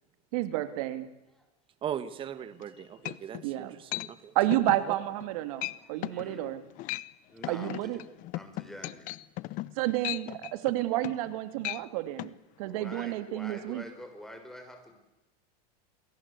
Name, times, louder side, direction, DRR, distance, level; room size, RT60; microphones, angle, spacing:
voice 1, 0.3-1.1 3.4-3.8 4.3-6.6 7.5-8.0 9.8-12.3 12.6-13.8, right 15 dB, 65° right, 10 dB, 2.5 m, -30 dB
voice 2, 1.8-4.6, right 9 dB, 25° right, 13 dB, 1.6 m, -39 dB
sound 1, 2.6-2.7 3.1-3.5 3.9-4.1 4.5-4.8 5.2-5.3 5.6-5.8 6.0-6.3 6.7-7.1 7.4-11.3 11.6-11.8 12.2-12.3, left 19 dB, 40° left, 0.9 m, -36 dB
voice 3, 5.8-6.6 7.3-8.0 8.3-9.1 12.7-14.9, left 1 dB, ahead, 5 dB, 6.0 m, -47 dB
28.5 x 21.5 x 8.4 m, 0.98 s
supercardioid pair, 145°, 20 cm